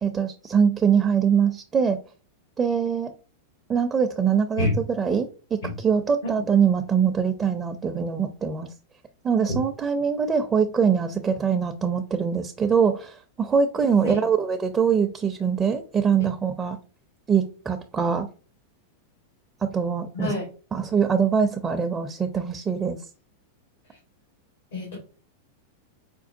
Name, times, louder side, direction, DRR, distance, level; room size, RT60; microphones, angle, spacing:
voice 1, 0.0-2.0 2.6-3.1 3.7-8.7 9.2-16.8 17.3-18.3 19.6-20.3 20.7-23.0, right 6 dB, 20° right, 0.5 m, -23 dB
voice 2, 20.1-20.5 24.7-25.0, left 2 dB, 80° left, 1.4 m, -27 dB
5.2 x 2.2 x 2.6 m
hypercardioid pair, 105°, 0 cm